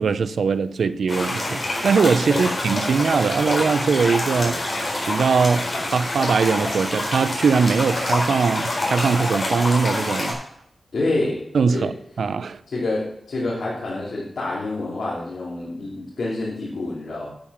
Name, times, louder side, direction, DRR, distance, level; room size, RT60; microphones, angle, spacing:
voice 1, 0.0-4.6 5.1-10.4 11.5-12.6, right 5 dB, 90° right, 0.5 m, -21 dB
sound 1, 1.1-10.3, left 1 dB, 40° left, 4.2 m, -26 dB
voice 2, 10.9-11.4 11.7-11.9 12.7-17.3, left 2 dB, 75° left, 3.1 m, -27 dB
8.9 x 8.8 x 5.7 m
wide cardioid pair, 105°, 0 cm